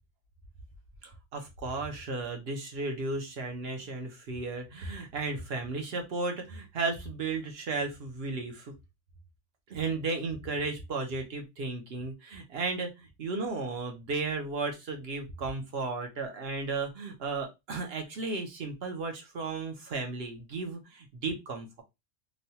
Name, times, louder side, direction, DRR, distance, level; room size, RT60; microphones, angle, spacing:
voice 1, 1.0-8.7 9.7-21.8, right 3 dB, 55° right, 4 dB, 0.9 m, -34 dB
3.1 x 2.2 x 2.7 m, 0.22 s
omnidirectional pair, 1.4 m